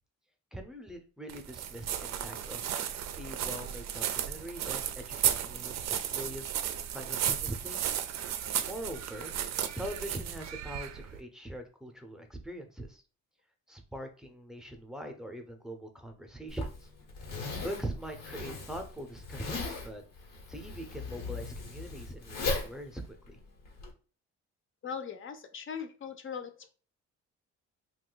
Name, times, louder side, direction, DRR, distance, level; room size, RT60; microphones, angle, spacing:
voice 1, 0.5-2.6 3.2-6.5 6.9-7.8 8.6-9.3 9.7-13.0 13.7-16.9 17.6-20.0 20.5-23.0 23.3-23.4, right 1 dB, ahead, 3 dB, 0.6 m, -42 dB
sound 1, 1.3-11.2, right 10 dB, 60° right, 0.4 m, -34 dB
Zipper (clothing), 16.5-23.9, left 3 dB, 85° left, 1.2 m, -38 dB
voice 2, 24.8-26.7, left 7 dB, 40° left, 7 dB, 0.6 m, -40 dB
2.6 x 2.4 x 3.9 m, 0.37 s
cardioid pair, 90°, 30 cm